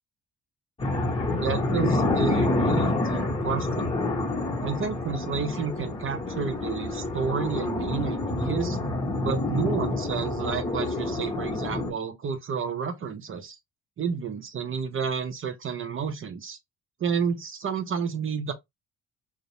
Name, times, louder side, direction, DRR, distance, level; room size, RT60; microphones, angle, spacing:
sound 1, 0.8-11.9, left 2 dB, 20° left, 0.8 m, -27 dB
voice 1, 1.3-3.9 4.6-8.8 9.2-13.6 14.0-16.6 17.0-18.5, right 6 dB, 45° right, 0.5 m, -30 dB
2.4 x 2.0 x 2.8 m
cardioid pair, 90°, 30 cm